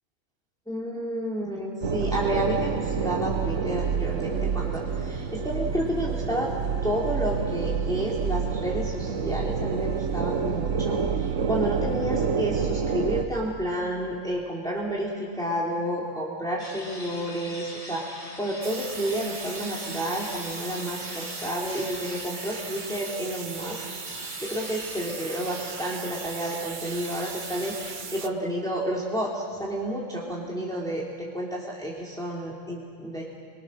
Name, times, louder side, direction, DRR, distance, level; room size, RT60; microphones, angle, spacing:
voice 1, 0.7-6.5 6.8-33.2, equal, 5° left, -4 dB, 2.9 m, -31 dB
sound 1, 1.8-13.3, right 6 dB, 75° right, 1.5 m, -28 dB
sound 2, 16.6-27.9, left 1 dB, 35° left, 3.0 m, -43 dB
sound 3, 18.6-28.3, right 5 dB, 40° right, 1.0 m, -38 dB
27.5 x 23.0 x 6.4 m, 2.2 s
omnidirectional pair, 1.3 m